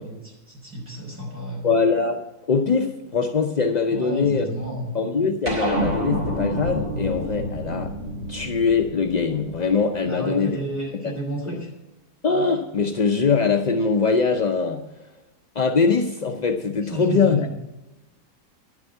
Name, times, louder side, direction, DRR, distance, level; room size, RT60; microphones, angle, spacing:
voice 1, 0.0-1.7 3.9-4.9 10.0-11.7 16.8-17.5, right 1 dB, 10° right, -4 dB, 5.5 m, -31 dB
voice 2, 1.6-4.4 4.9-7.9 8.3-10.6 11.5-11.6 12.2-15.1 15.6-17.7, left 5 dB, 55° left, 4 dB, 0.4 m, -22 dB
sound 1, 5.5-10.2, right 1 dB, 35° right, 3.8 m, -28 dB
11.0 x 7.2 x 9.2 m, 1.0 s
omnidirectional pair, 1.7 m